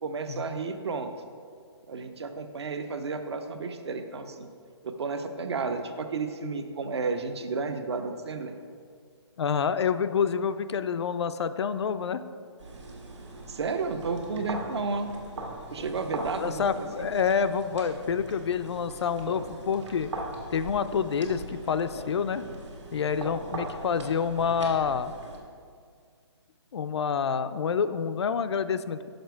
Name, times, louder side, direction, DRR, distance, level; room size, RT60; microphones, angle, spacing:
voice 1, 0.0-1.1 1.9-4.5 4.8-8.6 13.5-15.1 15.7-17.1, right 4 dB, 65° right, 7 dB, 0.7 m, -32 dB
voice 2, 9.4-12.2 16.4-20.1 20.5-22.4 22.9-25.1 26.7-29.1, left 6 dB, 70° left, 12 dB, 0.4 m, -27 dB
sound 1, 12.6-25.4, right 2 dB, 85° right, 1.7 m, -40 dB
6.5 x 5.0 x 4.5 m, 2.1 s
hypercardioid pair, 170°, 15 cm